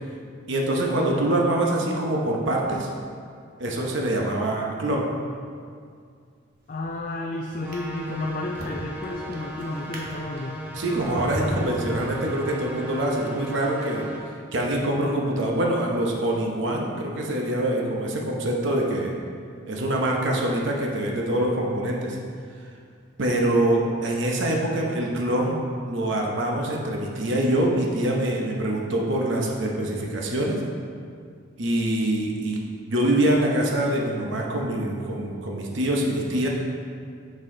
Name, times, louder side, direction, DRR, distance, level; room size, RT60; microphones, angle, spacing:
voice 1, 0.5-2.9 3.6-5.1 10.7-14.1 14.5-19.1 19.7-22.2 23.2-25.6 25.9-30.6 31.6-32.6 32.9-36.5, right 1 dB, 65° right, -1 dB, 0.8 m, -24 dB
Drawer open or close, 6.5-7.0 7.5-12.7 13.4-13.6, equal, 45° right, 1.1 m, -38 dB
voice 2, 6.7-10.6, left 2 dB, 40° left, 0 dB, 0.4 m, -32 dB
sound 1, 7.6-14.2, right 1 dB, 5° right, 0.6 m, -37 dB
6.5 x 6.2 x 3.8 m, 2.2 s
head